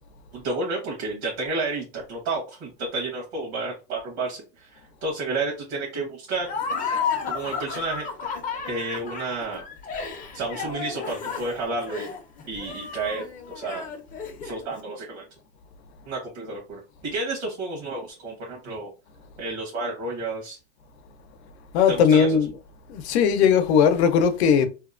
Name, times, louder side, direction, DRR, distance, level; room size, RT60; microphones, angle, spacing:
voice 1, 0.3-6.5 7.3-8.1 8.7-9.6 10.3-12.1 12.5-13.9 14.4-15.2 16.1-18.9 19.4-20.6 21.9-22.4, right 3 dB, 75° right, 1.1 m, -31 dB
Laughter, 6.4-14.7, left 5 dB, 25° left, 0.5 m, -32 dB
voice 2, 21.7-22.6 22.9-24.7, left 7 dB, 80° left, 0.6 m, -19 dB
2.8 x 2.1 x 2.4 m
supercardioid pair, 130°, 32 cm